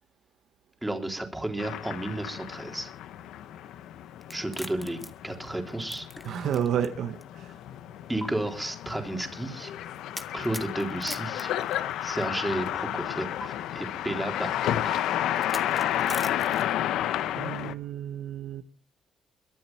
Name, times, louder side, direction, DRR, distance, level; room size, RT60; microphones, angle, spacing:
voice 1, 0.8-2.9 4.3-6.1 8.1-9.7 10.3-11.5 12.0-15.1, right 1 dB, 10° right, 3 dB, 3.7 m, -32 dB
sound 1, 1.6-17.7, left 12 dB, 85° left, 0.9 m, -32 dB
sound 2, 4.2-6.9 7.2-7.3 8.2-8.3 10.1-12.3 13.4-13.5 15.4-16.9, left 1 dB, 5° left, 1.6 m, -41 dB
voice 2, 6.2-7.5 16.1-16.3 17.4-18.6, right 9 dB, 70° right, 10 dB, 1.1 m, -31 dB
23.0 x 7.7 x 5.7 m, 0.39 s
cardioid pair, 90°, 0 cm